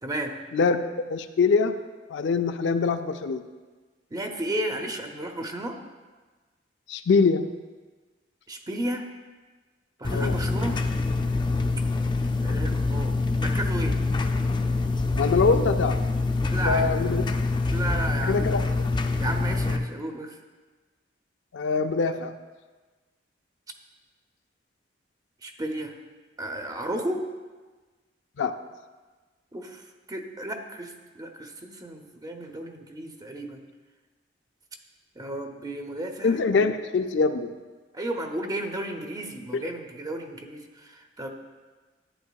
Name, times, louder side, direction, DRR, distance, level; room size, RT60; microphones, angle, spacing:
voice 1, 0.0-0.3 4.1-5.8 8.5-9.1 10.0-10.8 12.4-14.0 16.4-17.2 17.7-18.7 19.2-20.4 25.4-25.9 26.4-27.3 29.5-33.6 35.2-36.4 37.9-41.3, right 1 dB, 20° right, 4 dB, 0.7 m, -33 dB
voice 2, 1.1-1.7 2.1-3.5 6.9-7.5 10.1-10.3 15.2-16.0 16.6-17.2 18.3-18.7 21.5-22.3 28.4-28.5 36.2-37.5, left 4 dB, 80° left, 8 dB, 0.4 m, -23 dB
sound 1, 10.0-19.8, left 3 dB, 25° left, 0.4 m, -25 dB
11.0 x 8.9 x 2.3 m, 1.3 s
head